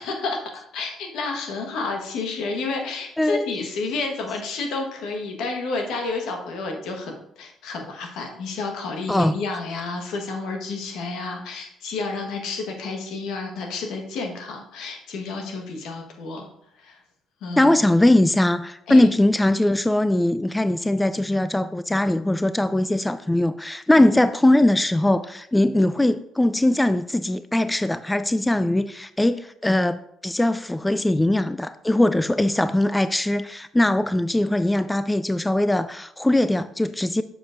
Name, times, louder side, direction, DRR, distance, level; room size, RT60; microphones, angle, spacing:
voice 1, 0.0-16.5 16.8-17.0 17.4-17.8 18.9-19.1, left 3 dB, 75° left, 3 dB, 1.3 m, -30 dB
voice 2, 17.6-37.2, left 1 dB, 10° left, 13 dB, 0.3 m, -21 dB
7.1 x 6.7 x 2.5 m, 0.73 s
supercardioid pair, 65°, 0 cm